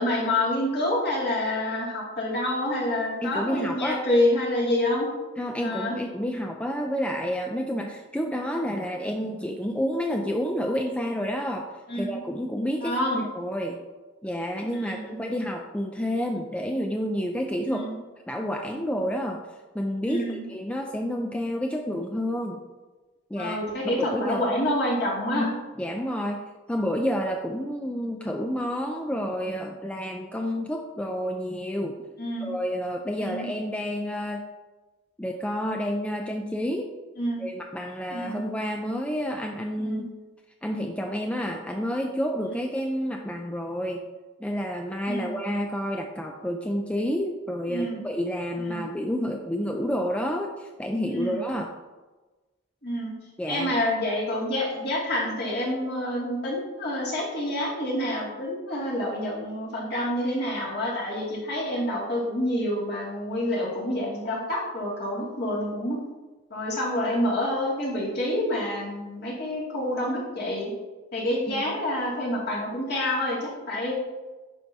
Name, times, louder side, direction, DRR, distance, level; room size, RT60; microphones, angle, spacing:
voice 1, 0.0-5.1 5.6-5.9 11.9-12.2 12.8-13.2 14.7-15.2 17.6-18.0 20.1-20.4 23.4-25.5 32.2-32.5 33.2-33.5 37.2-37.4 38.1-38.4 39.8-40.0 45.1-45.4 47.7-48.0 48.6-48.8 51.1-51.6 52.8-53.1 53.5-66.0 66.5-70.7 71.1-73.9, left 1 dB, 55° left, -5 dB, 2.3 m, -27 dB
voice 2, 3.2-4.0 5.4-11.7 11.9-13.8 14.2-17.8 18.3-19.4 19.7-22.6 23.3-24.5 25.3-32.0 32.4-34.4 35.2-36.9 37.4-40.1 40.6-44.0 44.4-51.7 53.4-53.7 71.5-71.7, equal, 5° left, 2 dB, 0.4 m, -29 dB
9.8 x 6.0 x 2.8 m, 1.2 s
head